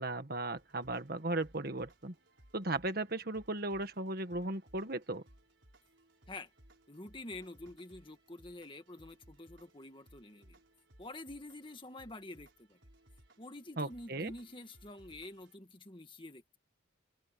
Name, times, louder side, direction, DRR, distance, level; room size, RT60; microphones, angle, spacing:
voice 1, 0.0-2.1 2.5-5.2 13.8-14.3, right 2 dB, 50° right, 1.7 m, -36 dB
sound 1, 0.6-15.6, right 1 dB, 65° right, 5.1 m, -63 dB
voice 2, 6.9-10.6 11.0-12.8 13.4-16.6, left 2 dB, 25° left, 2.0 m, -48 dB
open air
head